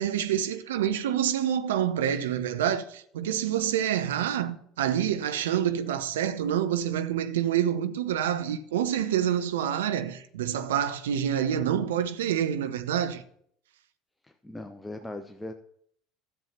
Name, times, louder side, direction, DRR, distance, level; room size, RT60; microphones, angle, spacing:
voice 1, 0.0-13.2, right 10 dB, 75° right, 0.7 m, -27 dB
voice 2, 14.2-15.5, left 1 dB, 10° left, 0.8 m, -39 dB
13.5 x 7.5 x 4.4 m
figure-of-eight pair, 65°, 0 cm